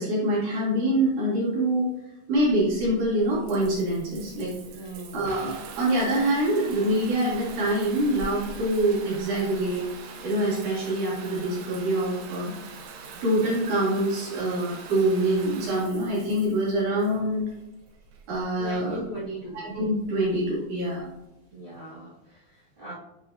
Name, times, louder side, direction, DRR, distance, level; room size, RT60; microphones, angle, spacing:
voice 1, 0.0-1.9 2.3-4.8 5.1-5.5 5.8-9.8 10.2-12.5 13.2-17.5 18.3-19.0 19.5-21.1, right 1 dB, 60° right, -6 dB, 3.9 m, -25 dB
Water tap faucet / Bathtub (filling or washing) / Trickle dribble, 2.3-21.2, right 4 dB, 85° right, 2.8 m, -42 dB
voice 2, 4.7-5.2 18.6-19.6 21.5-22.9, right 1 dB, 40° right, -13 dB, 2.6 m, -39 dB
8.5 x 4.8 x 2.9 m, 0.94 s
omnidirectional pair, 4.1 m